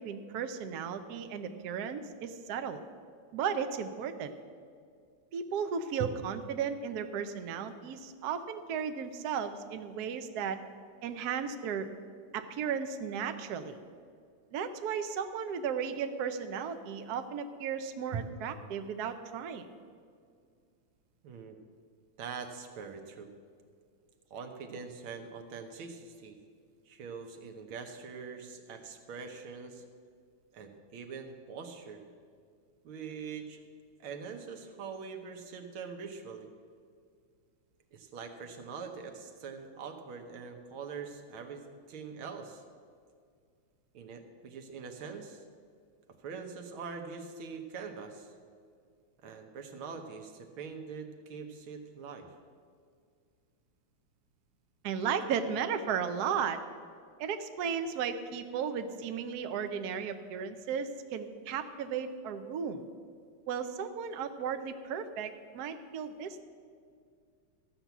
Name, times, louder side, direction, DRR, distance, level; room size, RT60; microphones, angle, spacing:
voice 1, 0.0-2.8 3.3-4.3 5.3-10.6 11.0-11.9 12.3-13.8 14.5-19.7 54.8-56.6 57.2-62.8 63.5-66.4, right 7 dB, 65° right, 8 dB, 1.0 m, -35 dB
voice 2, 21.2-21.6 22.2-23.3 24.3-26.4 26.9-29.8 30.5-32.0 32.8-33.6 34.0-36.5 37.9-42.6 43.9-45.4 46.2-48.3 49.2-52.3, right 5 dB, 80° right, 5 dB, 1.8 m, -43 dB
13.5 x 5.9 x 8.0 m, 2.1 s
omnidirectional pair, 2.3 m